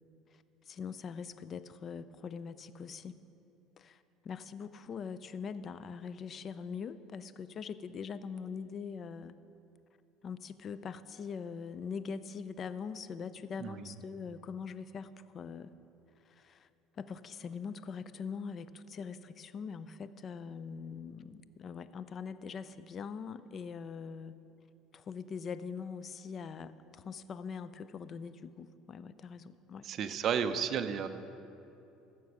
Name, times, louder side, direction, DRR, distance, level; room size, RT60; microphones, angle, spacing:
voice 1, 0.7-3.2 3.8-9.3 10.2-15.7 16.3-16.7 17.0-24.4 24.9-29.9, left 6 dB, 35° left, 14 dB, 0.5 m, -42 dB
voice 2, 13.6-13.9 29.8-31.1, right 7 dB, 45° right, 9 dB, 0.6 m, -32 dB
14.5 x 6.9 x 6.3 m, 2.9 s
supercardioid pair, 120°, 0 cm